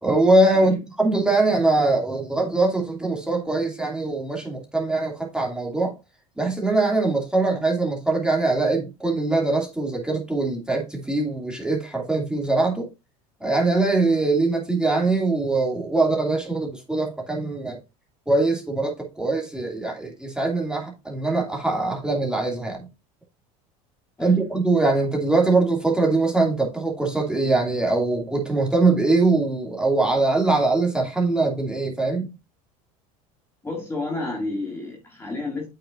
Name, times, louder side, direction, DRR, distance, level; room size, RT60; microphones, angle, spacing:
voice 1, 0.0-5.9 6.4-12.9 13.4-17.8 18.3-22.9 24.2-32.3, right 2 dB, 5° right, 2.5 m, -22 dB
voice 2, 33.6-35.7, left 2 dB, 15° left, 2.1 m, -31 dB
8.6 x 6.0 x 2.6 m
supercardioid pair, 100°, 18 cm